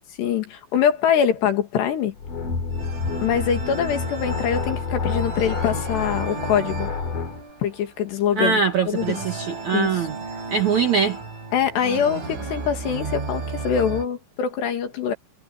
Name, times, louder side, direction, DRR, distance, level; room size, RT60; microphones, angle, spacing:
voice 1, 0.2-2.1 3.2-6.9 7.6-8.6 8.9-9.2 9.7-9.9 11.5-15.1, left 8 dB, 65° left, 4.2 m, -23 dB
sound 1, 2.2-7.4, left 4 dB, 45° left, 5.2 m, -28 dB
sound 2, 2.7-14.1, right 3 dB, 85° right, 10.5 m, -34 dB
voice 2, 8.4-10.2 10.5-11.2, right 6 dB, 60° right, 1.9 m, -22 dB
omnidirectional pair, 5.6 m